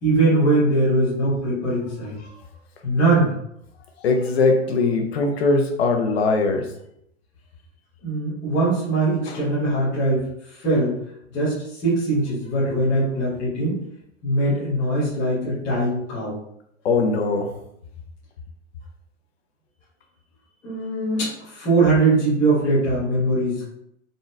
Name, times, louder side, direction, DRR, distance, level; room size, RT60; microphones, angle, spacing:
voice 1, 0.0-2.1 2.8-3.3 8.0-10.2 10.5-11.0 11.3-13.8 14.2-16.3 20.6-23.7, right 2 dB, 5° left, -11 dB, 0.4 m, -21 dB
voice 2, 4.0-6.7 9.3-9.4 16.8-17.5, left 3 dB, 50° left, 4 dB, 0.8 m, -21 dB
4.0 x 3.8 x 2.4 m, 0.74 s
hypercardioid pair, 165°, 40 cm